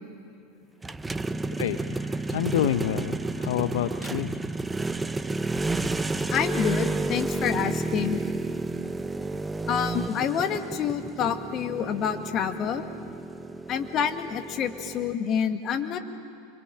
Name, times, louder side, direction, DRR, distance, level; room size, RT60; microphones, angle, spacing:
sound 1, 0.8-15.1, right 3 dB, 10° right, 0.9 m, -31 dB
voice 1, 1.6-4.3, left 12 dB, 70° left, 11 dB, 0.8 m, -28 dB
voice 2, 6.3-8.2 9.7-12.8 13.7-16.0, left 8 dB, 40° left, 8 dB, 2.0 m, -28 dB
26.5 x 24.0 x 9.0 m, 2.4 s
hypercardioid pair, 85°, 0 cm